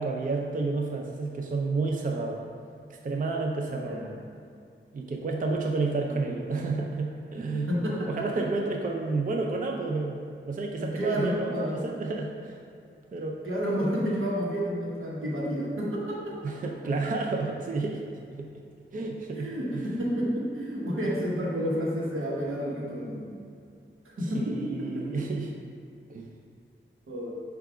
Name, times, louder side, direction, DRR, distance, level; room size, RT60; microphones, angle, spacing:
voice 1, 0.0-2.4 2.9-4.0 4.9-7.7 8.1-10.2 10.5-12.6 13.1-13.4 16.4-18.0 18.3-18.5 18.9-19.8 24.2-25.5 26.1-26.3, right 3 dB, 40° right, 1 dB, 0.4 m, -30 dB
voice 2, 3.7-4.1 6.0-6.4 7.5-8.3 10.8-11.8 13.4-16.7 18.9-23.2 24.2-25.2 27.1-27.3, equal, 85° right, -5 dB, 1.0 m, -30 dB
4.6 x 2.3 x 4.8 m, 2.3 s
wide cardioid pair, 85°, 21 cm